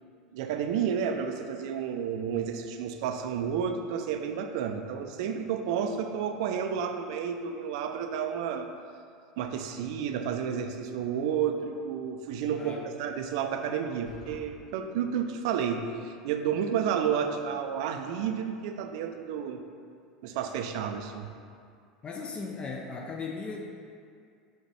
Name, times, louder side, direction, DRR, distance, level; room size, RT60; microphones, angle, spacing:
voice 1, 0.3-8.7 9.4-19.6 20.2-21.3, right 7 dB, 60° right, 6 dB, 0.3 m, -31 dB
sound 1, 14.0-14.4, left 1 dB, 65° left, 1.4 m, -48 dB
voice 2, 22.0-23.6, left 4 dB, 25° left, 0 dB, 0.4 m, -37 dB
4.1 x 3.9 x 3.3 m, 2.2 s
figure-of-eight pair, 80°, 4 cm